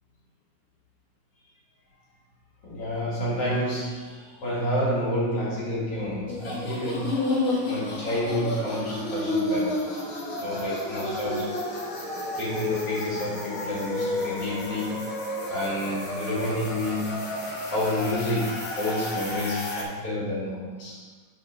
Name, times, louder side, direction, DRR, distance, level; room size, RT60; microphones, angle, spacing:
voice 1, 2.6-9.9 10.4-11.5 12.3-15.1 15.5-17.2 17.7-21.0, left 1 dB, 45° left, -7 dB, 3.0 m, -29 dB
sound 1, 6.3-19.8, left 2 dB, 80° left, 0.7 m, -31 dB
sound 2, 6.6-19.1, right 1 dB, 35° right, 0.3 m, -45 dB
6.4 x 5.0 x 6.5 m, 1.4 s
omnidirectional pair, 3.9 m